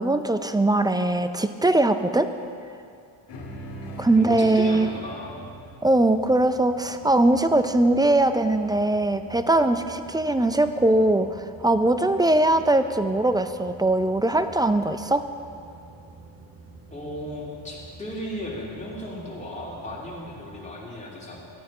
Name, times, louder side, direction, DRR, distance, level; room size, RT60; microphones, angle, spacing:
voice 1, 0.0-2.3 4.0-4.9 5.8-15.3, right 2 dB, 10° right, 10 dB, 0.3 m, -21 dB
sound 1, 3.3-8.0, right 1 dB, 55° left, 2.0 m, -43 dB
sound 2, 3.3-20.6, right 3 dB, 30° right, 1.6 m, -48 dB
voice 2, 4.2-5.4 16.9-21.4, left 1 dB, 15° left, -5 dB, 3.0 m, -35 dB
13.5 x 9.2 x 4.8 m, 2.4 s
cardioid pair, 95°, 50 cm